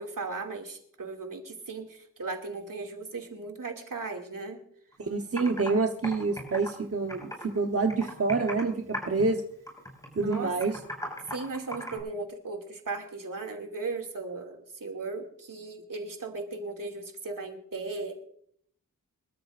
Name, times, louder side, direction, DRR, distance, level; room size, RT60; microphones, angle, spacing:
voice 1, 0.0-4.6 10.2-10.8 11.3-18.2, right 3 dB, 75° right, 2 dB, 2.6 m, -37 dB
Computer keyboard, 4.9-5.0 5.4-5.7 6.0-7.6 7.9-8.7 8.9-9.3 9.7-12.0, equal, 10° left, 5.7 m, -37 dB
voice 2, 5.0-9.4 10.2-10.8, right 3 dB, 45° right, 3 dB, 1.1 m, -27 dB
25.0 x 13.0 x 2.6 m, 0.66 s
wide cardioid pair, 70°, 33 cm